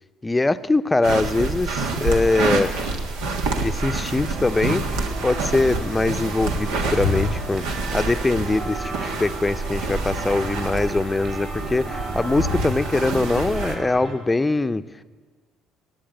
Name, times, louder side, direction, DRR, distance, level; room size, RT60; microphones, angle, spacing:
voice 1, 0.2-2.7 3.6-14.8, left 2 dB, 20° left, 12 dB, 0.6 m, -22 dB
sound 1, 1.0-13.7, right 2 dB, 90° right, 1.6 m, -27 dB
sound 2, 4.3-14.1, right 3 dB, 50° right, 5.4 m, -34 dB
16.0 x 8.9 x 9.0 m, 1.5 s
supercardioid pair, 70°, 0 cm